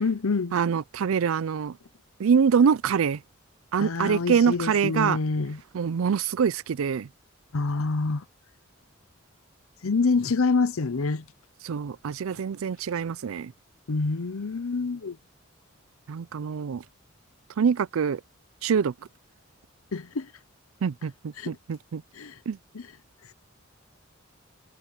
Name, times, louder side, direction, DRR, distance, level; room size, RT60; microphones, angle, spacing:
voice 1, 0.0-0.6 3.8-5.6 7.5-8.2 9.8-11.2 13.9-15.2 19.9-20.3 21.4-21.6 22.1-22.4 22.7-22.9, left 4 dB, 85° left, 0.7 m, -26 dB
voice 2, 0.5-1.7 2.2-3.2 3.7-5.2 5.7-7.1 11.6-13.5 16.1-16.8 17.6-18.2 18.6-18.9 20.8-22.0 22.5-22.6, right 6 dB, 80° right, 0.4 m, -24 dB
head